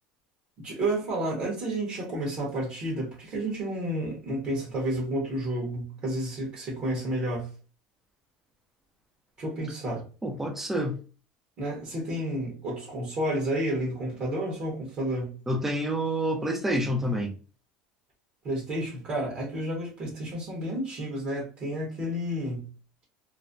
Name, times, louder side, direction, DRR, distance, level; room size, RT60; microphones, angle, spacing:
voice 1, 0.6-7.5 9.4-10.0 11.6-15.4 18.4-22.7, right 1 dB, 40° right, 1.3 m, -31 dB
voice 2, 10.2-11.0 15.5-17.3, right 1 dB, 10° right, 0.6 m, -28 dB
3.0 x 2.1 x 2.6 m
supercardioid pair, 130°, 3 cm